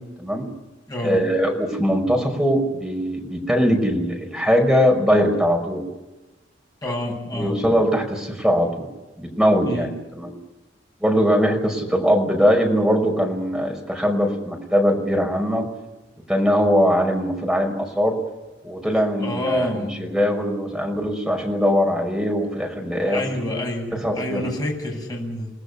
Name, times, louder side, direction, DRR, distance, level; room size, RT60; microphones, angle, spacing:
voice 1, 0.2-0.5 1.0-5.8 7.3-8.9 9.2-10.3 11.0-15.7 16.3-18.2 18.6-23.2 23.9-24.5, equal, ahead, 2 dB, 5.5 m, -21 dB
voice 2, 0.9-1.2 6.8-7.6 9.6-9.9 19.2-20.1 23.0-25.5, left 1 dB, 20° left, 0 dB, 7.4 m, -28 dB
29.0 x 19.0 x 7.1 m, 1.1 s
head